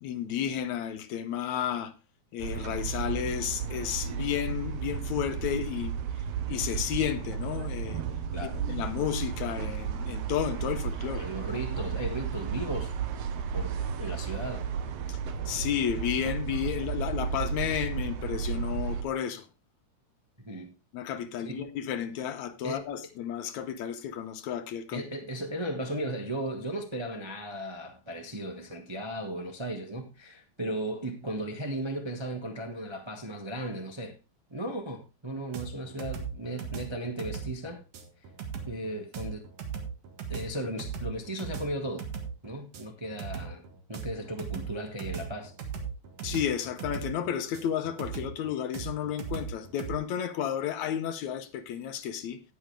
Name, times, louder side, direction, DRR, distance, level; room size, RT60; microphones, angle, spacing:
voice 1, 0.0-1.9 2.3-6.0 6.5-8.0 8.4-11.2 15.1-15.2 15.5-19.5 20.9-25.0 46.2-52.4, left 9 dB, 75° left, 2.2 m, -32 dB
sound 1, 2.4-19.0, right 7 dB, 65° right, 1.9 m, -33 dB
voice 2, 11.1-12.9 13.5-14.7 20.4-20.7 21.4-21.7 22.6-22.8 24.9-34.2 34.5-37.8 38.6-39.4 40.3-42.1 42.4-43.6 43.9-45.5, right 1 dB, 20° right, 0.7 m, -36 dB
sound 2, 35.5-50.0, right 7 dB, 85° right, 3.3 m, -38 dB
18.0 x 6.3 x 3.4 m
omnidirectional pair, 3.4 m